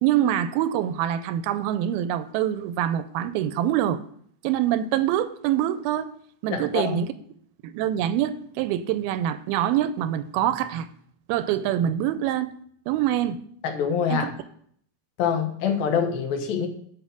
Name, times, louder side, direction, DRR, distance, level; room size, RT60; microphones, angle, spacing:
voice 1, 0.0-4.0 4.4-6.1 6.4-7.1 7.6-10.9 11.3-12.5 12.9-13.4 14.1-14.3, right 11 dB, 85° right, 2.4 m, -25 dB
voice 2, 6.5-7.0 13.6-14.3 15.2-16.7, left 7 dB, 75° left, 2.8 m, -25 dB
8.1 x 5.6 x 7.3 m
omnidirectional pair, 4.3 m